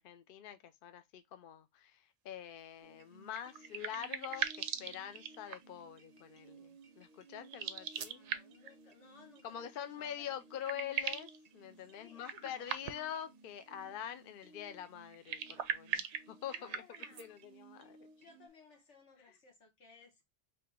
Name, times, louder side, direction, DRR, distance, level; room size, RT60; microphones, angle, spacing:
voice 1, 0.0-8.2 9.4-16.8 17.2-18.1, left 10 dB, 60° left, 0.6 m, -45 dB
sound 1, 2.8-18.5, right 3 dB, 45° right, 0.6 m, -60 dB
sound 2, 3.3-5.8 7.4-8.7 10.1-10.2 10.4-11.4 12.2-13.2 15.1-17.3, right 8 dB, 85° right, 0.9 m, -40 dB
voice 2, 8.0-10.4 12.0-12.7 16.5-17.3 18.2-20.2, left 5 dB, 80° left, 1.7 m, -60 dB
3.8 x 2.8 x 3.5 m
omnidirectional pair, 1.2 m